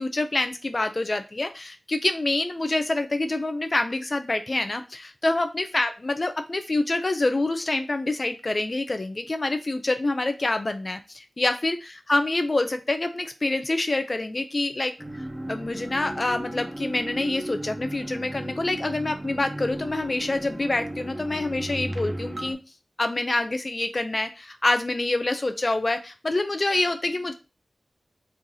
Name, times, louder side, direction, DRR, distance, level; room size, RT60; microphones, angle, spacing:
voice 1, 0.0-14.9 15.5-22.6 23.0-27.3, left 2 dB, 40° left, 8 dB, 0.3 m, -26 dB
sound 1, 15.0-22.5, right 1 dB, 25° right, 0.7 m, -35 dB
3.1 x 2.6 x 3.7 m, 0.30 s
wide cardioid pair, 95°, 0 cm